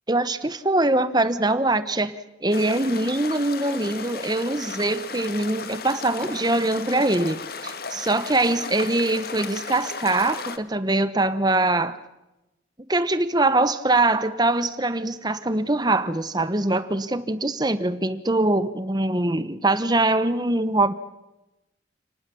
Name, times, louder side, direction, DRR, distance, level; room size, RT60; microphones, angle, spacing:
voice 1, 0.1-2.1 2.4-12.0 12.9-20.9, right 2 dB, 20° right, 13 dB, 1.0 m, -23 dB
sound 1, 2.5-10.6, left 4 dB, 55° left, 1.7 m, -35 dB
29.0 x 20.0 x 7.1 m, 0.94 s
head